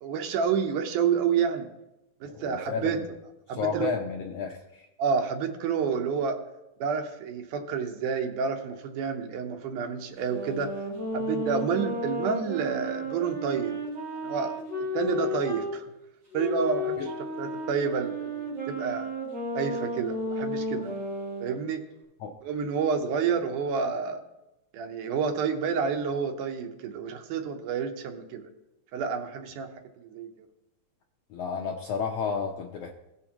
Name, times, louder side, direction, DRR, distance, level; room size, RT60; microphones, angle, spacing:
voice 1, 0.0-1.7 2.2-3.0 3.5-4.0 5.0-6.4 6.8-10.7 11.1-13.8 14.1-14.6 14.9-15.9 16.3-19.1 19.6-20.9 21.4-21.8 22.4-24.2 24.7-28.4 28.9-29.7 30.0-30.3, right 6 dB, 80° right, 5 dB, 2.3 m, -29 dB
voice 2, 2.2-3.0 3.6-4.9 17.0-17.1 22.2-22.4 31.3-32.9, left 5 dB, 75° left, 1 dB, 1.4 m, -32 dB
sound 1, 10.2-15.7 16.3-21.5, left 1 dB, 30° right, 4.4 m, -33 dB
17.0 x 6.9 x 2.9 m, 0.92 s
omnidirectional pair, 3.6 m